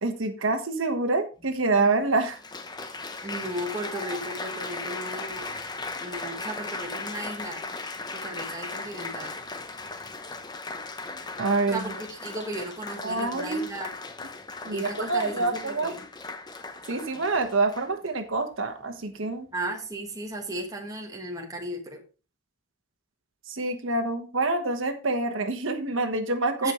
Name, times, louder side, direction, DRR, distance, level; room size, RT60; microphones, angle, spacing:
voice 1, 0.0-2.4 11.4-11.8 12.4-12.5 13.0-13.6 14.7-15.9 16.9-19.5 23.5-26.7, right 3 dB, 75° right, 6 dB, 1.2 m, -26 dB
Applause, 1.4-1.5 2.2-18.1 18.8-19.2, left 3 dB, 20° left, 0.7 m, -37 dB
voice 2, 3.2-5.5 6.0-7.6 8.2-9.3 11.7-13.9 14.7-16.0 19.5-22.0 26.6-26.7, right 1 dB, 15° right, 1 dB, 1.5 m, -35 dB
15.5 x 5.3 x 3.1 m, 0.33 s
head